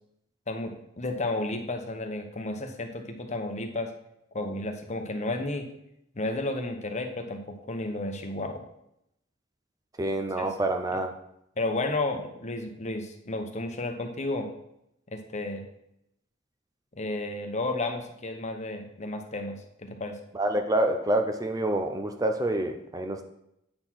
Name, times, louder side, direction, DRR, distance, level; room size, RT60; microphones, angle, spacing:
voice 1, 0.5-3.9 4.3-5.7 6.1-8.6 10.4-10.5 11.6-14.5 15.1-15.6 16.9-20.2, left 2 dB, 35° left, 5 dB, 0.9 m, -32 dB
voice 2, 10.0-11.1 20.3-23.2, right 1 dB, 20° right, 5 dB, 0.6 m, -27 dB
8.7 x 4.0 x 6.2 m, 0.79 s
head